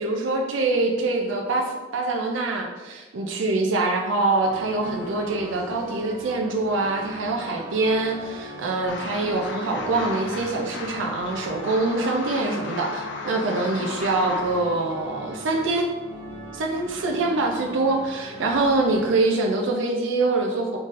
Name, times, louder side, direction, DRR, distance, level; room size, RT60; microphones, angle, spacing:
voice 1, 0.0-15.9 16.5-20.8, right 2 dB, 65° right, 1 dB, 0.4 m, -24 dB
sound 1, 4.4-19.1, right 1 dB, 15° right, 1.2 m, -40 dB
sound 2, 8.9-14.6, left 3 dB, 60° left, 0.5 m, -35 dB
4.0 x 3.8 x 2.5 m, 1.3 s
head